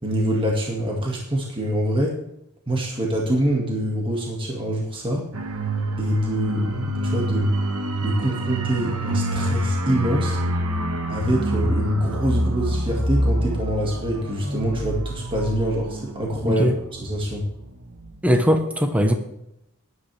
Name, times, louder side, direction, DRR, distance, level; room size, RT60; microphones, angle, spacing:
voice 1, 0.0-2.2 2.7-5.3 6.0-7.5 8.0-10.4 11.1-16.6 16.9-17.5, equal, 25° right, -1 dB, 2.1 m, -25 dB
sound 1, 5.3-17.7 18.0-18.2, right 1 dB, 80° right, 1.5 m, -26 dB
voice 2, 16.4-16.7 18.2-19.1, equal, 5° right, 6 dB, 1.1 m, -19 dB
16.0 x 11.0 x 3.5 m, 0.82 s
head